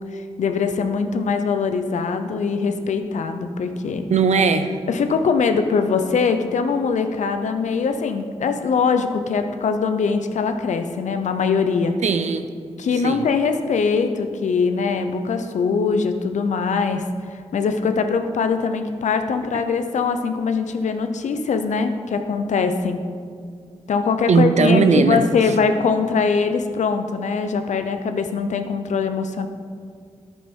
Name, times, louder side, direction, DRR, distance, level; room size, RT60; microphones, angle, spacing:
voice 1, 0.1-4.1 4.9-11.9 12.8-17.0 17.5-23.0 23.9-29.5, left 5 dB, 85° left, 8 dB, 0.7 m, -22 dB
voice 2, 4.1-4.8 12.0-12.5 12.9-13.3 24.3-25.2, right 5 dB, 75° right, 9 dB, 0.7 m, -18 dB
10.5 x 9.0 x 4.6 m, 2.1 s
cardioid pair, 45°, 12 cm